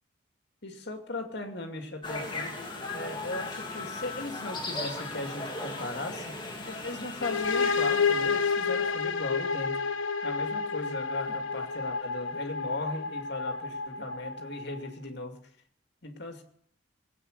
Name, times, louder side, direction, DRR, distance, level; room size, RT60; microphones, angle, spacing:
voice 1, 0.6-2.6 2.9-6.4 6.7-9.8 10.2-15.4 16.0-16.4, left 2 dB, 55° left, 4 dB, 2.4 m, -38 dB
sound 1, 2.0-9.0, left 2 dB, 25° left, 2.4 m, -38 dB
sound 2, 7.2-14.9, left 5 dB, 80° left, 1.0 m, -30 dB
21.5 x 8.9 x 6.6 m, 0.62 s
head